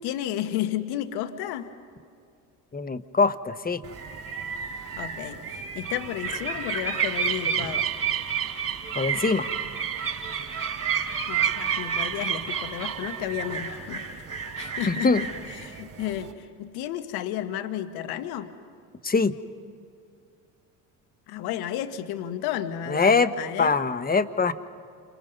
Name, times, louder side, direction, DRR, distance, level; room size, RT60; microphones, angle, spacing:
voice 1, 0.0-1.7 5.0-7.9 11.3-14.1 14.6-18.5 21.3-23.8, left 11 dB, 70° left, 9 dB, 1.5 m, -32 dB
voice 2, 2.7-3.8 8.9-9.5 14.9-15.2 19.0-19.3 22.9-24.5, left 4 dB, 25° left, 12 dB, 1.3 m, -23 dB
sound 1, 3.8-16.3, right 7 dB, 40° right, 4.4 m, -30 dB
29.0 x 26.0 x 5.4 m, 2.3 s
hypercardioid pair, 70°, 39 cm